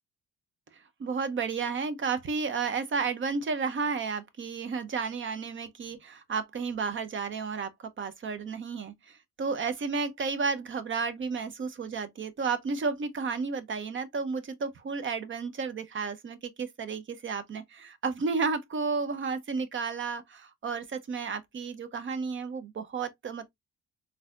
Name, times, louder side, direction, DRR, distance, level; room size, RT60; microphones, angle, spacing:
voice 1, 1.0-7.7 8.0-23.5, right 5 dB, 40° right, 0.7 m, -32 dB
3.9 x 2.8 x 2.4 m
cardioid pair, 90°, 30 cm